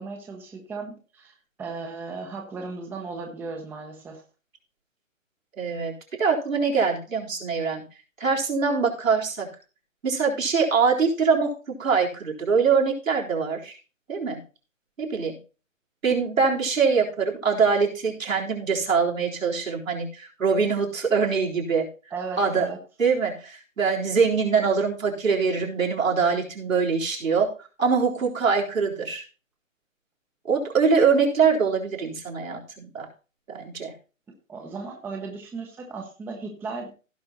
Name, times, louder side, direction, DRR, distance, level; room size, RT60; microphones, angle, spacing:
voice 1, 0.0-4.2 22.1-22.8 34.5-36.9, right 4 dB, 5° right, 2 dB, 0.9 m, -36 dB
voice 2, 5.6-5.9 6.2-7.8 8.2-9.5 10.0-13.7 14.1-14.4 15.0-15.4 16.0-21.9 22.4-22.7 23.0-27.5 27.8-29.2 30.4-33.1 33.5-33.9, right 5 dB, 80° right, -2 dB, 3.8 m, -23 dB
16.0 x 5.6 x 3.9 m, 0.34 s
hypercardioid pair, 140°, 39 cm